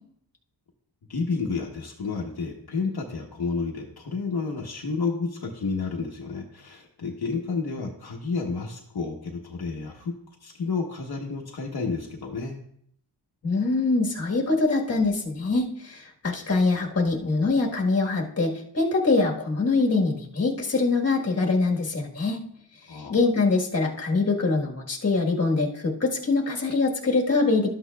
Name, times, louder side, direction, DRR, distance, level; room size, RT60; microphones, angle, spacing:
voice 1, 1.1-10.1 10.4-12.5 22.9-23.2, left 4 dB, 60° left, -1 dB, 1.1 m, -30 dB
voice 2, 13.4-22.4 22.9-27.7, left 3 dB, 35° left, 0 dB, 1.4 m, -24 dB
12.5 x 8.4 x 2.3 m, 0.68 s
wide cardioid pair, 145°, 42 cm